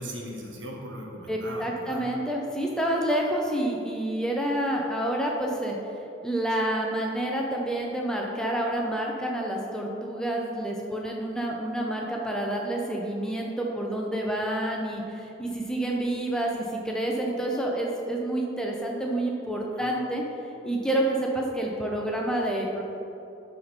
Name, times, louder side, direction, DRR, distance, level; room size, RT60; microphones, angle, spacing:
voice 1, 0.0-2.0 19.7-19.9, equal, 80° right, -1 dB, 1.4 m, -38 dB
voice 2, 1.3-5.8 6.2-20.2 20.6-22.8, right 1 dB, 5° left, -1 dB, 0.8 m, -28 dB
12.0 x 4.3 x 4.3 m, 2.9 s
head